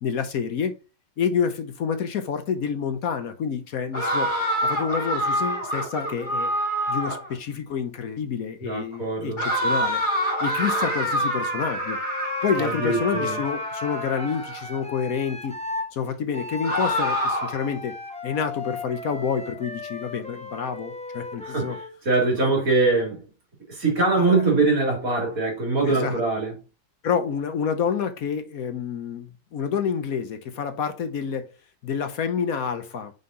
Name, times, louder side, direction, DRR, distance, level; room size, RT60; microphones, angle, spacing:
voice 1, 0.0-0.7 1.2-4.3 4.6-6.5 6.9-10.0 10.4-12.0 12.4-15.5 15.9-17.9 18.2-21.8 22.4-22.7 24.1-24.4 25.9-26.2 27.0-31.5 31.8-33.1, left 7 dB, 65° left, 1.2 m, -28 dB
sound 1, 3.9-7.3 9.4-14.6 16.6-17.7, equal, 25° left, 3.5 m, -26 dB
voice 2, 8.6-9.4 12.6-13.4 21.4-23.2 23.7-26.5, right 3 dB, 55° right, 3.2 m, -23 dB
Wind instrument woodwind instrument, 10.1-15.9 16.3-22.0, left 2 dB, 5° left, 0.6 m, -36 dB
5.7 x 5.5 x 3.8 m
omnidirectional pair, 1.7 m